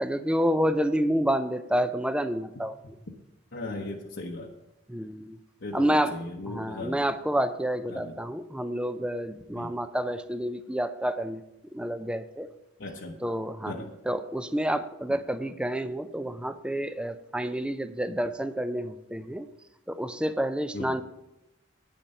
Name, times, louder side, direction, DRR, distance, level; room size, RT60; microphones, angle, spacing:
voice 1, 0.0-2.8 4.9-5.4 5.7-6.2 6.5-11.4 11.7-12.5 13.2-19.5 19.9-21.0, equal, 5° right, 11 dB, 0.4 m, -29 dB
voice 2, 3.5-4.5 5.6-7.0 7.9-8.1 9.6-9.7 12.8-13.2 13.7-13.9 20.7-21.0, left 2 dB, 65° left, -1 dB, 0.9 m, -37 dB
9.7 x 7.2 x 5.5 m, 0.90 s
head